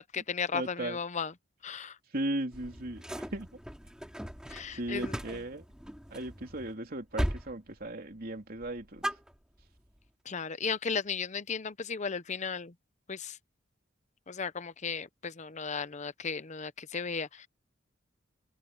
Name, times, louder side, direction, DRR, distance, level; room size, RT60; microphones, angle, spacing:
voice 1, 0.0-1.3 1.6-1.9 4.5-5.1 10.3-12.7 13.1-13.4 14.3-17.5, left 5 dB, 40° left, 0.7 m, -35 dB
voice 2, 0.5-1.0 2.1-3.5 4.7-5.6 6.1-9.1, right 1 dB, 50° right, 3.3 m, -36 dB
sound 1, 2.5-6.7 7.1-7.5 7.8-8.3 8.6-9.9, equal, 5° right, 2.5 m, -38 dB
open air
head